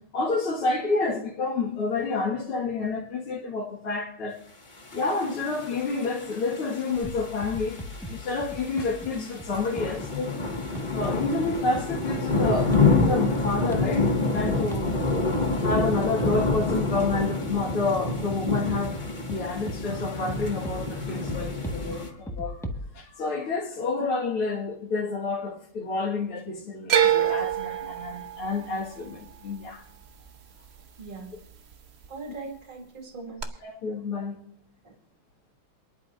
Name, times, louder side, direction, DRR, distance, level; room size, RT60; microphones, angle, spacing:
voice 1, 0.1-4.4 4.9-7.8 8.1-10.5 10.9-15.2 15.6-22.6 22.9-29.8 32.3-32.4 33.6-34.4, left 3 dB, 75° left, 2.8 m, -29 dB
sound 1, 4.9-22.1, left 3 dB, 20° left, 1.8 m, -28 dB
sound 2, 7.0-22.9, equal, ahead, 1.2 m, -40 dB
sound 3, 26.9-31.1 31.4-32.1 33.4-33.5, right 10 dB, 55° right, 0.7 m, -26 dB
voice 2, 31.0-31.3 32.1-33.6 34.8-34.9, right 4 dB, 25° right, 2.1 m, -40 dB
28.0 x 11.0 x 2.6 m
omnidirectional pair, 2.4 m